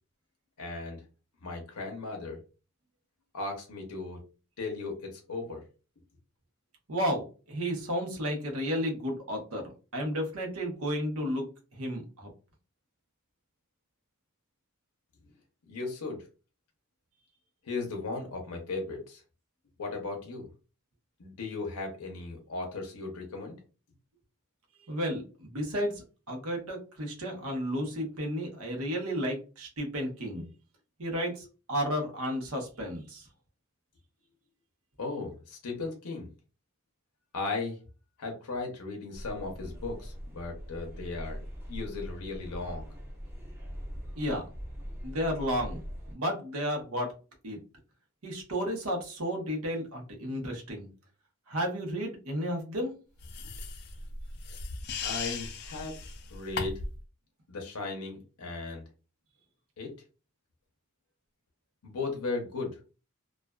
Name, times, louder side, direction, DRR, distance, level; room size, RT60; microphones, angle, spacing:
voice 1, 0.6-1.0 1.4-2.4 3.3-4.2 4.6-5.6 15.7-16.3 17.6-19.2 19.8-20.5 21.2-23.6 35.0-36.3 37.3-37.8 38.2-42.9 55.0-56.0 56.3-56.8 57.5-58.8 59.8-59.9 61.8-62.8, left 3 dB, 90° left, 1 dB, 0.6 m, -36 dB
voice 2, 6.9-9.6 9.9-12.3 24.9-30.5 31.0-33.3 44.2-44.4 45.0-45.8 46.1-47.1 47.4-47.6 48.2-50.9 51.5-52.9, equal, 70° right, 2 dB, 0.9 m, -32 dB
sound 1, 39.1-46.1, equal, 10° right, 0.6 m, -42 dB
sound 2, 53.2-57.0, left 4 dB, 45° left, 0.4 m, -37 dB
2.4 x 2.3 x 2.2 m, 0.34 s
head